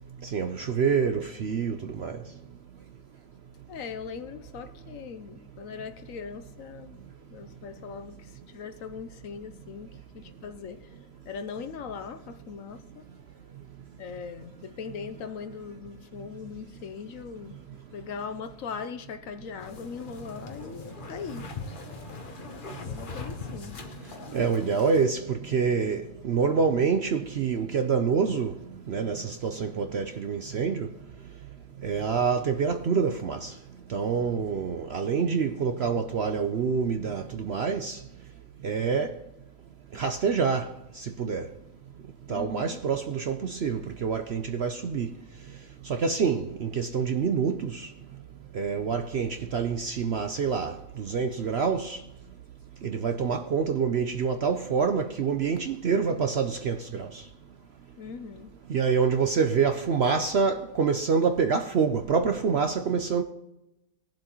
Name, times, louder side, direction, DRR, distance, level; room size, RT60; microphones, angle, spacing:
voice 1, 0.3-2.2 24.3-28.5 28.9-30.9 31.8-33.5 33.9-38.0 38.6-39.1 39.9-40.7 41.0-41.4 42.3-45.1 45.9-47.9 48.5-52.0 52.8-57.1 58.7-63.2, right 6 dB, 60° right, 0.7 m, -26 dB
voice 2, 3.7-7.0 7.3-10.9 11.2-13.0 14.0-17.6 17.9-21.5 22.8-23.8 42.3-42.8 58.0-58.5, left 6 dB, 65° left, 1.0 m, -40 dB
sound 1, 19.6-25.0, left 4 dB, 35° left, 1.1 m, -40 dB
20.0 x 7.5 x 3.0 m
omnidirectional pair, 1.7 m